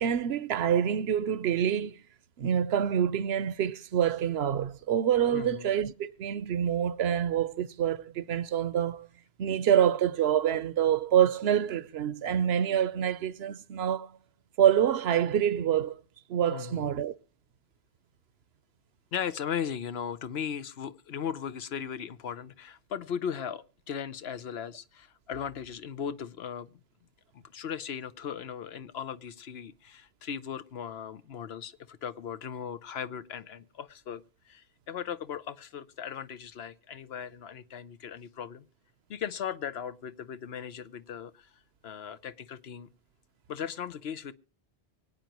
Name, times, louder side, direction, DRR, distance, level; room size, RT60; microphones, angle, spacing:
voice 1, 0.0-2.0 2.4-9.1 9.4-14.1 14.6-15.9 16.3-17.1, right 9 dB, 75° right, 1.0 m, -26 dB
voice 2, 5.3-5.7 12.9-13.0 16.5-16.9 19.1-26.7 27.5-34.2 34.5-38.7 39.1-41.3 41.8-42.9 43.5-44.3, left 8 dB, 75° left, 1.0 m, -37 dB
24.5 x 9.0 x 3.0 m
omnidirectional pair, 1.1 m